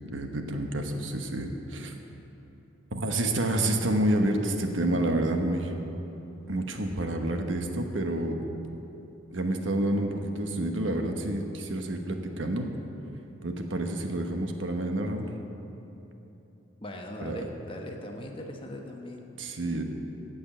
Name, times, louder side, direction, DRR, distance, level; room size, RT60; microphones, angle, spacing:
voice 1, 0.1-1.9 2.9-5.7 6.5-8.4 9.3-12.7 13.4-15.3 17.2-17.4 19.4-19.8, right 1 dB, 80° right, 4 dB, 1.1 m, -29 dB
voice 2, 16.8-19.3 19.6-19.8, left 1 dB, 25° left, 1 dB, 1.2 m, -40 dB
15.5 x 5.5 x 9.0 m, 3.0 s
head